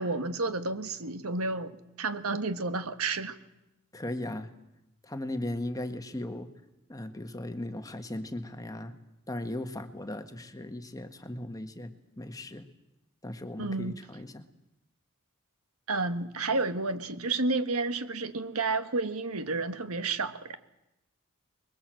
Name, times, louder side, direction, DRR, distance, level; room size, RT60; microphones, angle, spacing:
voice 1, 0.0-3.4 13.6-14.0 15.9-20.6, right 3 dB, 80° right, 1.5 m, -31 dB
voice 2, 3.9-4.5 5.0-6.5 6.9-8.9 9.3-12.7 13.2-14.5, left 1 dB, 15° left, 1.5 m, -37 dB
25.5 x 22.0 x 7.8 m
head